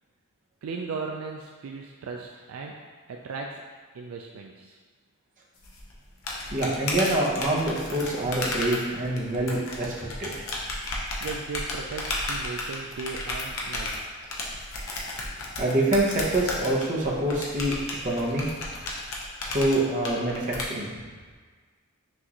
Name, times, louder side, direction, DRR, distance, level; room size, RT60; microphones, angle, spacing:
voice 1, 0.6-2.8 3.1-3.6 3.9-4.8 11.2-13.9, right 4 dB, 70° right, 0 dB, 0.3 m, -36 dB
sound 1, 5.6-20.7, left 2 dB, 65° left, 0.7 m, -33 dB
voice 2, 6.5-9.9 10.2-10.3 15.6-17.8 18.0-18.5 19.5-20.9, right 1 dB, 35° right, -5 dB, 0.8 m, -25 dB
6.0 x 2.5 x 2.9 m, 1.5 s
head